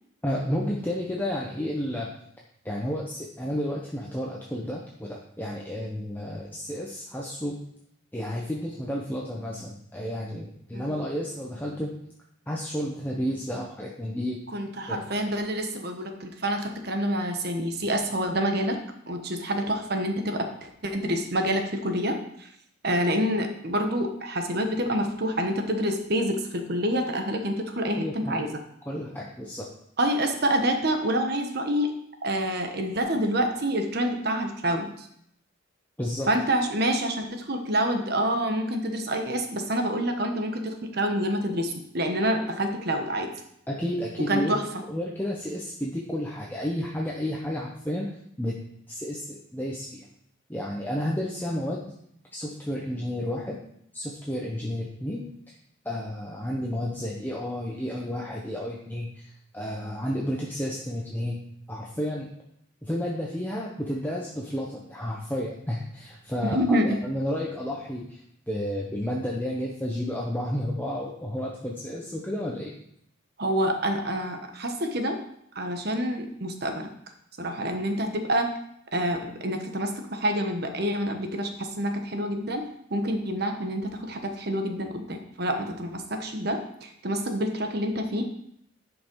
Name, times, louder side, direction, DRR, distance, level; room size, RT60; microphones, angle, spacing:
voice 1, 0.2-2.1 2.6-7.6 8.1-12.0 12.5-14.4 14.9-15.0 28.0-28.4 28.9-29.7 36.0-36.3 43.7-44.5 44.9-48.1 48.4-48.6 48.9-50.1 50.5-51.8 52.3-53.6 53.9-55.5 55.8-59.3 59.5-61.4 61.7-62.3 62.8-68.2 68.5-72.7, equal, 10° left, -3 dB, 0.9 m, -31 dB
voice 2, 14.5-18.8 19.1-22.5 22.8-28.5 30.0-31.9 32.2-35.1 36.3-43.3 44.3-44.8 66.4-67.0 73.4-75.2 75.5-76.9 77.4-78.5 78.9-82.6 82.9-88.2, equal, 55° right, 5 dB, 1.2 m, -27 dB
11.0 x 5.4 x 4.7 m, 0.72 s
head